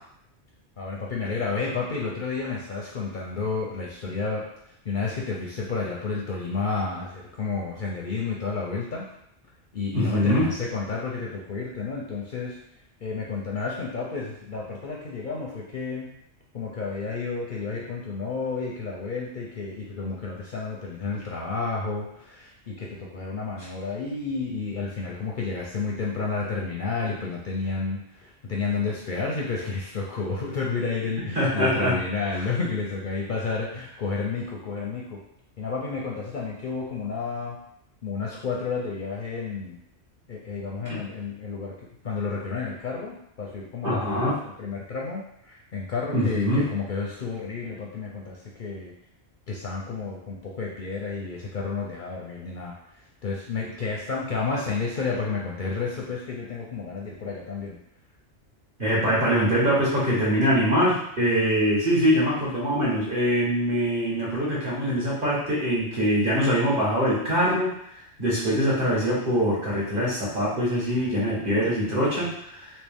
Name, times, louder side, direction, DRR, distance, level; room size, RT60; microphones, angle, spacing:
voice 1, 0.8-4.5 4.8-9.1 9.7-12.6 13.0-16.1 16.5-35.2 35.6-37.6 38.0-39.8 40.3-41.7 42.0-48.9 49.5-52.7 53.2-57.8, left 4 dB, 55° left, -3 dB, 0.6 m, -31 dB
voice 2, 9.9-10.5 31.3-32.0 40.9-41.0 43.8-44.4 46.1-46.6 58.8-67.7 68.2-72.7, equal, 45° right, -7 dB, 1.5 m, -23 dB
3.2 x 2.9 x 3.5 m, 0.73 s
omnidirectional pair, 1.2 m